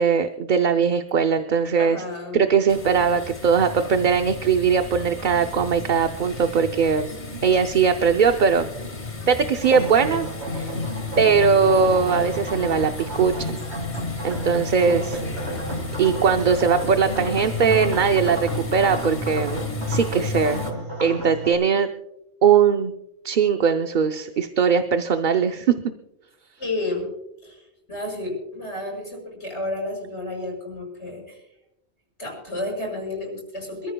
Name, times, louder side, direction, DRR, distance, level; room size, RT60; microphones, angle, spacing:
voice 1, 0.0-2.0 2.3-7.1 7.4-8.7 9.3-10.3 10.5-10.7 11.2-13.6 14.2-15.2 16.0-19.6 19.9-20.6 21.0-21.9 22.4-22.9 23.2-25.9, right 6 dB, 50° right, 6 dB, 0.8 m, -20 dB
voice 2, 1.8-2.5 14.7-15.2 15.5-15.6 26.6-27.1 27.4-31.4 32.2-33.9, left 2 dB, 85° left, 0 dB, 6.0 m, -31 dB
sound 1, 2.7-20.7, left 3 dB, 40° left, 1.6 m, -33 dB
sound 2, 9.6-21.5, equal, 85° right, 4.8 m, -32 dB
27.5 x 14.0 x 2.3 m, 0.90 s
omnidirectional pair, 1.1 m